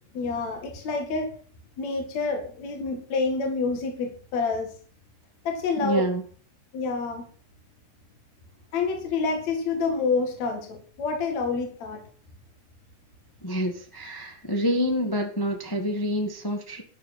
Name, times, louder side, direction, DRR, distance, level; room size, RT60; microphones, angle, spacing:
voice 1, 0.1-1.3 1.8-4.7 5.4-6.1 6.7-7.3 8.7-12.0, left 4 dB, 60° left, 3 dB, 3.3 m, -28 dB
voice 2, 5.8-6.2 13.4-16.8, equal, 15° left, 3 dB, 0.7 m, -27 dB
12.5 x 6.8 x 7.7 m, 0.43 s
omnidirectional pair, 3.8 m